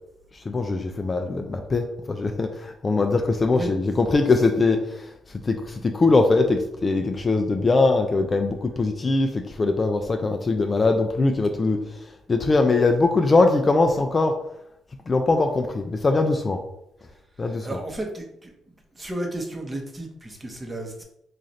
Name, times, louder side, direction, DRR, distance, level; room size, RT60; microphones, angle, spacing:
voice 1, 0.3-14.4 15.1-16.6 17.4-17.8, left 3 dB, 30° left, 5 dB, 0.3 m, -22 dB
voice 2, 17.4-18.5 18.9-21.0, right 1 dB, 20° right, 2 dB, 0.8 m, -33 dB
3.1 x 2.4 x 3.9 m, 0.81 s
cardioid pair, 90°, 0 cm